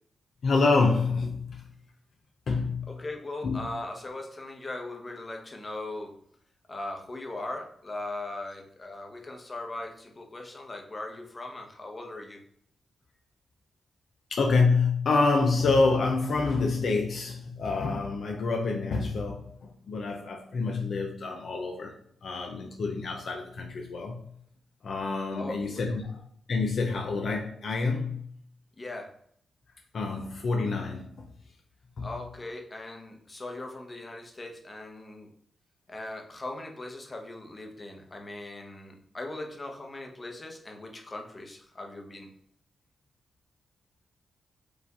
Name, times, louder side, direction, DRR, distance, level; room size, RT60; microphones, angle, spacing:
voice 1, 0.4-1.6 2.5-2.8 3.4-3.6 14.3-21.9 22.2-24.2 24.8-26.2 26.5-28.2 29.9-31.3 32.0-32.1, left 3 dB, 70° left, 2 dB, 0.6 m, -27 dB
voice 2, 2.9-6.2 6.7-12.4 25.3-26.0 28.8-29.1 32.0-35.3 35.9-42.3, left 2 dB, 35° left, 2 dB, 1.0 m, -39 dB
5.0 x 2.6 x 3.6 m, 0.66 s
cardioid pair, 55°, 0 cm